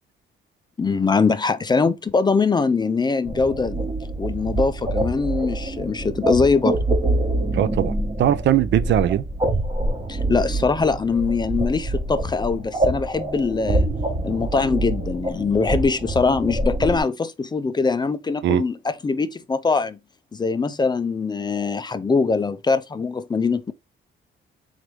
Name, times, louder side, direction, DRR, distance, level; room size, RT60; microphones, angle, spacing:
voice 1, 0.8-3.8 4.2-6.8 10.1-13.9 14.2-20.0 20.3-23.7, left 4 dB, 20° left, 0.4 m, -22 dB
sound 1, 3.2-17.0, right 1 dB, 25° right, 1.0 m, -25 dB
voice 2, 7.5-9.2 18.4-18.6, right 11 dB, 65° right, 0.4 m, -20 dB
3.9 x 3.2 x 3.1 m
cardioid pair, 90°, 20 cm